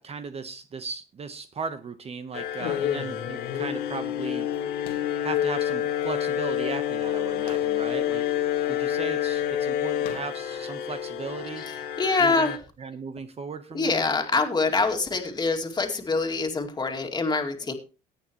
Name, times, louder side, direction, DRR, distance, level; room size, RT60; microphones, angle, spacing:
voice 1, 0.0-4.5 5.2-8.2 8.7-11.6 12.2-12.5 12.8-14.1, right 5 dB, 40° right, 10 dB, 1.0 m, -36 dB
sound 1, 2.3-12.6, left 11 dB, 85° left, 1.7 m, -28 dB
voice 2, 11.6-12.5 13.7-17.7, left 4 dB, 25° left, 3 dB, 2.3 m, -25 dB
18.0 x 8.9 x 3.0 m, 0.32 s
cardioid pair, 95°, 17 cm